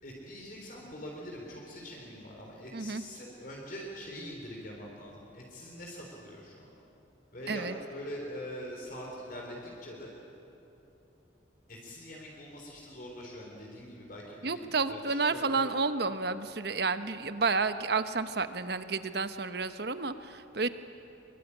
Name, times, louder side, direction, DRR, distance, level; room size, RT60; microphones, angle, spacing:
voice 1, 0.0-6.7 7.3-10.1 11.7-15.7, equal, 45° left, -1 dB, 3.9 m, -43 dB
voice 2, 14.4-20.7, right 4 dB, 55° right, 10 dB, 1.1 m, -31 dB
24.0 x 23.0 x 9.9 m, 2.9 s
head